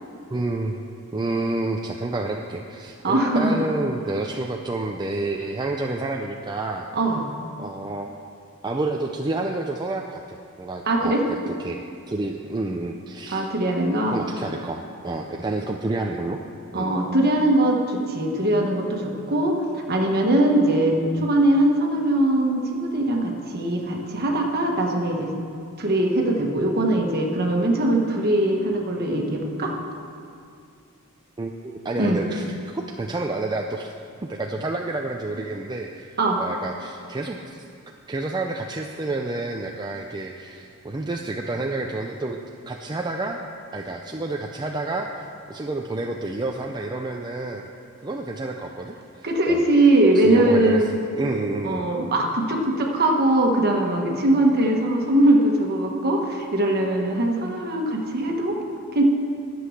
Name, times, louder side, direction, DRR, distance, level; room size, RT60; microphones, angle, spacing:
voice 1, 0.3-0.8 1.1-6.9 7.6-8.2 8.6-11.1 11.5-13.5 14.1-16.4 16.7-17.0 21.1-21.2 31.4-33.9 34.2-37.6 38.1-42.4 42.7-43.4 43.7-47.7 48.0-49.7 50.1-51.9, right 2 dB, 20° right, 1 dB, 0.4 m, -29 dB
voice 2, 3.0-3.7 6.9-7.2 10.8-11.2 13.3-14.2 16.7-25.3 25.8-29.7 32.0-32.2 36.2-36.4 49.2-51.0 51.6-58.6 58.9-59.0, right 1 dB, 45° right, 1 dB, 1.5 m, -21 dB
11.0 x 7.8 x 6.5 m, 2.4 s
head